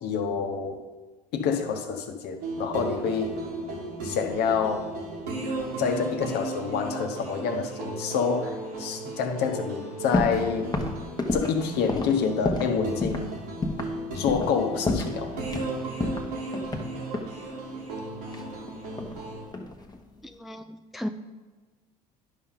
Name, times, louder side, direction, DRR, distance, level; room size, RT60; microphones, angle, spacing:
voice 1, 0.0-0.8 1.3-3.3 4.0-4.9 5.8-10.8 11.3-13.3 14.1-15.3, left 6 dB, 60° left, 5 dB, 1.1 m, -27 dB
sound 1, 2.4-19.5, right 2 dB, 80° right, 2.0 m, -35 dB
sound 2, 10.1-10.4 10.7-12.7 13.0-13.3 13.6-13.9 14.3-14.6 14.9-15.7 16.0-17.4 18.3-19.2 19.5-20.0, left 2 dB, 20° left, 1.2 m, -29 dB
voice 2, 20.2-21.1, equal, ahead, 7 dB, 0.4 m, -35 dB
11.0 x 5.6 x 3.9 m, 1.2 s
hypercardioid pair, 65°, 19 cm